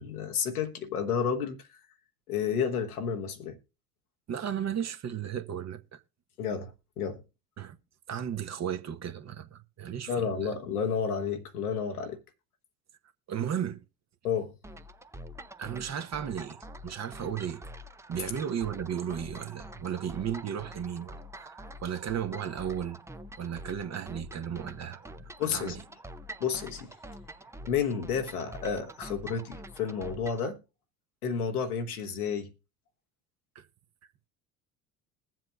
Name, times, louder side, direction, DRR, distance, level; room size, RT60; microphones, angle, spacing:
voice 1, 0.0-1.7 2.3-3.6 6.4-7.2 10.1-12.2 14.2-14.5 25.4-25.8 26.4-26.9 27.7-30.6 31.2-32.5, left 6 dB, 85° left, 1.2 m, -31 dB
voice 2, 4.3-6.0 7.6-7.8 8.1-10.5 13.3-13.8 15.6-17.6 18.1-23.0 23.4-25.8 33.5-33.7, right 9 dB, 40° right, 1.0 m, -35 dB
sound 1, 14.6-30.5, equal, 5° right, 0.6 m, -46 dB
21.0 x 7.5 x 2.3 m
figure-of-eight pair, 55°, 43 cm